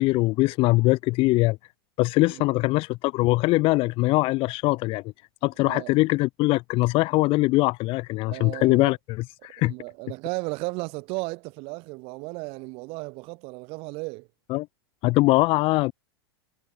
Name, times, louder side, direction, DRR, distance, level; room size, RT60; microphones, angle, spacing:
voice 1, 0.0-1.6 2.0-5.1 5.4-9.7 14.5-14.7 15.0-15.9, left 21 dB, 45° left, 3.9 m, -22 dB
voice 2, 8.3-8.9 9.6-14.3, right 27 dB, 50° right, 6.2 m, -35 dB
hypercardioid pair, 120°, 13 cm